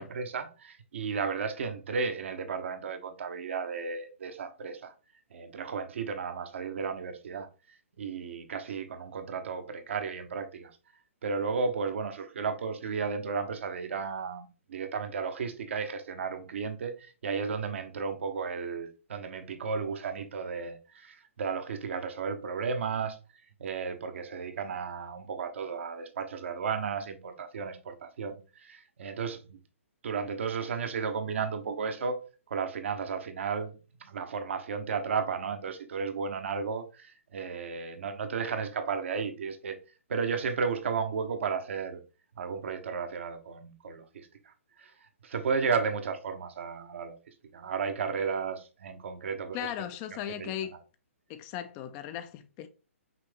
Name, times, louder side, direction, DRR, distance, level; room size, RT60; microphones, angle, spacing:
voice 1, 0.0-4.9 5.3-7.5 8.0-10.7 11.2-23.2 23.6-29.6 30.0-32.2 32.5-33.7 34.0-39.8 40.1-42.0 42.4-47.1 47.5-49.7 50.4-50.5, right 5 dB, 60° right, 0.9 m, -34 dB
voice 2, 49.5-50.7 51.3-52.7, left 11 dB, 25° left, 0.4 m, -37 dB
5.8 x 2.7 x 3.4 m
figure-of-eight pair, 130°, 8 cm